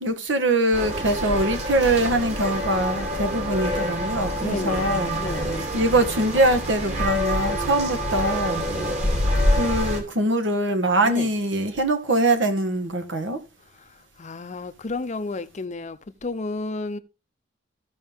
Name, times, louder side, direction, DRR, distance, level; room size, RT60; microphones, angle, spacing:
voice 1, 0.0-5.2 5.7-8.7 9.5-13.4, right 1 dB, 70° right, 1.6 m, -23 dB
sound 1, 0.7-10.0, equal, 40° right, 2.6 m, -26 dB
voice 2, 4.4-5.6 11.0-11.3 13.8-13.9 14.2-17.0, left 3 dB, 40° left, 0.6 m, -32 dB
15.5 x 5.5 x 3.5 m
head